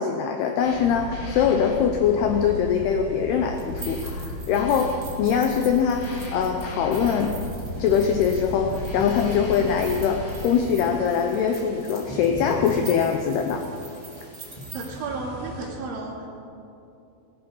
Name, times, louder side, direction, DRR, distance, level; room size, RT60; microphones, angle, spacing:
voice 1, 0.0-7.3 7.8-13.7, left 7 dB, 80° left, 4 dB, 2.3 m, -23 dB
sound 1, 0.6-10.6, left 1 dB, 65° left, 7.2 m, -35 dB
sound 2, 3.5-14.9, right 4 dB, 40° right, 1.1 m, -44 dB
sound 3, 7.7-15.7, equal, 15° left, 1.6 m, -40 dB
voice 2, 14.7-16.3, right 3 dB, 75° right, -1 dB, 4.6 m, -33 dB
18.5 x 14.0 x 5.5 m, 2.7 s
omnidirectional pair, 5.6 m